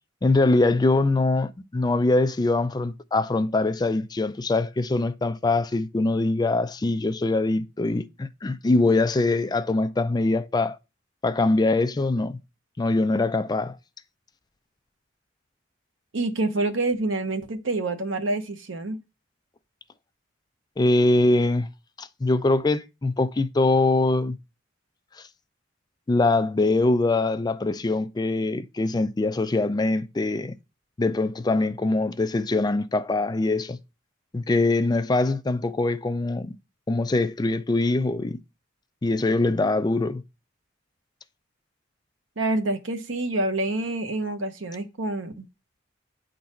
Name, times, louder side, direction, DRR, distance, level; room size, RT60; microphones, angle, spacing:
voice 1, 0.2-10.8 11.2-12.4 12.8-13.8 20.8-21.7 22.0-24.4 26.1-30.5 31.0-33.8 34.3-36.6 36.9-38.4 39.0-40.2, left 2 dB, 20° left, 0.4 m, -23 dB
voice 2, 16.1-19.0 42.4-45.5, right 2 dB, 80° right, 1.1 m, -27 dB
9.4 x 4.0 x 4.3 m
head